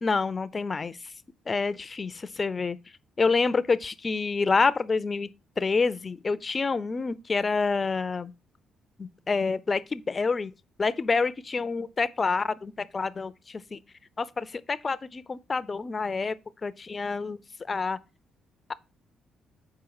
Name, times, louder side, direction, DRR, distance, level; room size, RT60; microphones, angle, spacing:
voice 1, 0.0-1.1 1.5-2.8 3.2-5.3 5.6-8.3 9.0-10.5 10.8-13.8 14.2-16.3 16.6-17.4 17.7-18.0 18.7-18.8, left 4 dB, 30° left, 0.5 m, -27 dB
7.0 x 4.7 x 4.7 m
cardioid pair, 90°, 0 cm